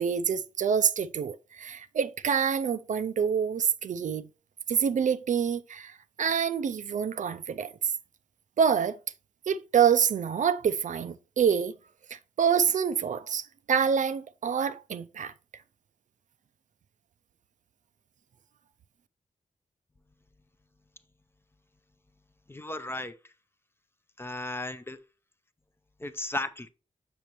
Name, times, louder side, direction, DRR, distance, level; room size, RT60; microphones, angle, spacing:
voice 1, 0.0-4.3 4.7-7.7 8.6-9.0 9.5-11.7 12.1-15.3, right 7 dB, 65° right, 0.4 m, -26 dB
voice 2, 22.5-23.1 24.2-25.0 26.0-26.7, left 2 dB, 15° left, 0.6 m, -34 dB
6.7 x 6.2 x 2.9 m
wide cardioid pair, 90°, 14 cm